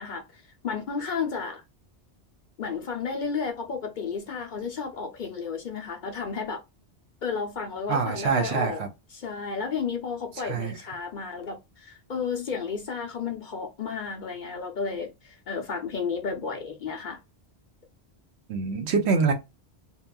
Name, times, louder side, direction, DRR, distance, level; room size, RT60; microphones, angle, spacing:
voice 1, 0.0-1.6 2.6-6.6 7.2-8.8 9.1-17.2, left 5 dB, 55° left, 0.6 m, -32 dB
voice 2, 7.9-8.9 10.3-10.7 18.5-19.3, right 5 dB, 75° right, 0.9 m, -25 dB
2.8 x 2.3 x 2.2 m
omnidirectional pair, 1.1 m